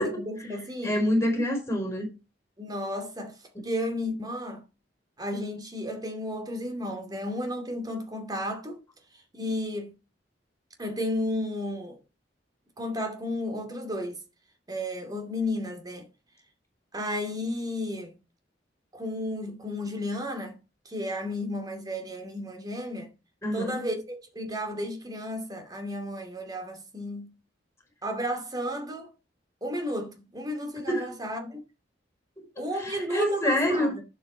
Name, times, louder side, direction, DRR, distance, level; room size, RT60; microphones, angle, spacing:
voice 1, 0.0-1.0 2.6-3.4 3.6-4.6 5.2-8.8 9.3-9.9 10.8-12.0 12.8-14.2 14.7-16.1 16.9-18.1 18.9-20.6 20.8-23.1 23.5-27.3 28.0-29.1 29.6-31.6 32.6-34.0, left 1 dB, 20° right, 2.5 m, -33 dB
voice 2, 0.8-2.1 23.4-23.8 30.9-31.1 32.7-34.0, left 1 dB, 15° left, 4.8 m, -26 dB
10.5 x 7.8 x 4.5 m
head